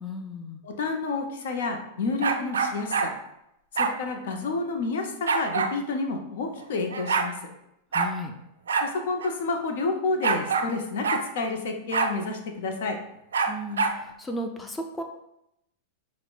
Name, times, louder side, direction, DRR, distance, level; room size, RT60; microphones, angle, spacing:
voice 1, 0.0-0.6 7.9-8.3 13.5-15.0, left 1 dB, 15° left, 4 dB, 0.4 m, -34 dB
voice 2, 0.6-3.1 3.7-7.5 8.8-13.0, left 3 dB, 70° left, 4 dB, 0.5 m, -30 dB
sound 1, 2.2-3.1 3.8-4.0 5.3-5.7 6.6-6.7 6.9-7.3 7.9-8.1 8.7-8.9 9.2-9.3 10.2-10.7 11.0-11.2 11.9-12.1 13.3-14.0, right 5 dB, 85° right, 0.3 m, -25 dB
5.7 x 2.0 x 2.3 m, 0.82 s
hypercardioid pair, 105°, 0 cm